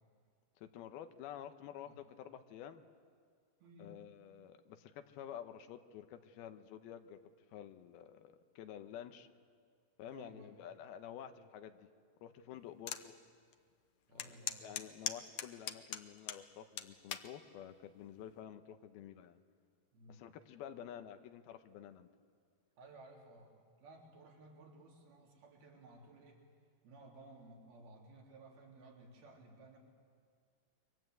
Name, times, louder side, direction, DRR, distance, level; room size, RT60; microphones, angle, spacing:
voice 1, 0.6-2.8 3.8-7.2 7.5-9.3 10.0-11.9 12.2-13.1 14.1-19.4 20.1-22.1, left 10 dB, 90° left, 8 dB, 2.9 m, -50 dB
voice 2, 3.6-4.1 10.1-10.5 12.8-13.0 14.1-14.7 19.9-20.3 22.8-23.5 23.8-26.4 26.8-29.8, right 2 dB, 80° right, -1 dB, 5.3 m, -57 dB
sound 1, 12.9-13.0 13.5-13.6 14.2-16.4 16.8-17.3 18.0-18.3, left 10 dB, 75° left, 1.6 m, -40 dB
28.0 x 24.0 x 8.0 m, 2.1 s
omnidirectional pair, 4.3 m